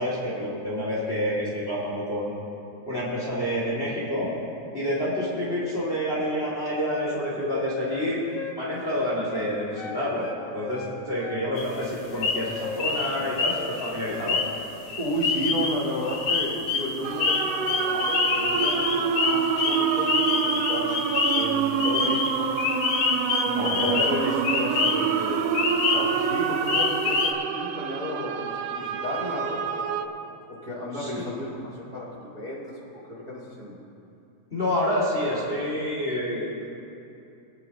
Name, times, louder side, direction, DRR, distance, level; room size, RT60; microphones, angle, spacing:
voice 1, 0.0-2.3 2.8-4.3 4.7-10.3 10.5-14.4 23.4-24.3 31.0-31.2 34.5-36.6, equal, 20° left, -6 dB, 2.2 m, -28 dB
Wind instrument woodwind instrument, 7.0-10.4 10.7-12.3 12.6-12.8 13.1-13.8 14.0-14.3, left 5 dB, 80° left, 2.3 m, -39 dB
sound 1, 11.6-11.7 12.2-12.5 12.8-25.2 25.5-26.3 26.7-27.3, left 5 dB, 65° left, 1.5 m, -26 dB
voice 2, 15.0-20.9 21.3-22.5 23.5-25.6 25.9-30.2 30.6-32.6 32.9-33.8, equal, 15° right, -7 dB, 2.4 m, -33 dB
sound 2, 17.0-30.1, right 7 dB, 75° right, 1.5 m, -27 dB
24.5 x 9.4 x 2.9 m, 2.7 s
omnidirectional pair, 3.4 m